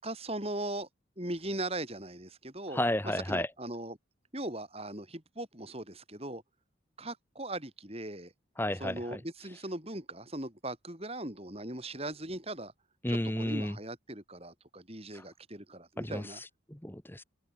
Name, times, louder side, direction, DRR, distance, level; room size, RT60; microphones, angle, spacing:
voice 1, 0.0-0.9 1.2-2.8 3.3-4.0 4.3-6.4 7.0-8.3 8.8-12.7 13.1-16.4, right 1 dB, 30° right, 7.1 m, -39 dB
voice 2, 2.7-3.5 8.6-9.2 13.0-13.8 15.1-15.2 16.0-17.2, left 1 dB, 10° left, 1.4 m, -32 dB
open air
head